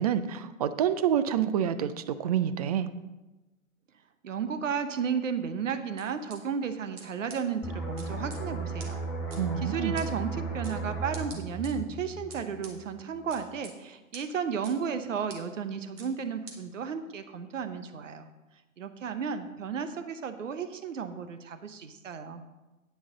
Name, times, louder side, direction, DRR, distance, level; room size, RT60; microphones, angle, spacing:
voice 1, 0.0-2.9 9.4-9.9, right 9 dB, 30° right, 13 dB, 0.4 m, -27 dB
voice 2, 4.2-9.0 9.6-18.3 18.8-22.4, right 6 dB, 70° right, 10 dB, 1.0 m, -33 dB
sound 1, 6.0-6.4 7.0-7.1 7.3-7.4 8.0-8.4 8.8-8.9 9.3-9.4 10.0-10.1 10.6-10.8 11.1-11.7 12.3-12.7 13.3-13.7 14.1-14.2 14.6-14.7 15.3-15.4 16.0-16.1 16.5-16.6, right 5 dB, 45° right, 2.0 m, -46 dB
sound 2, 7.6-13.0 13.3-13.6, right 3 dB, ahead, 2.4 m, -36 dB
9.7 x 9.6 x 3.9 m, 1.1 s
figure-of-eight pair, 120°, 40 cm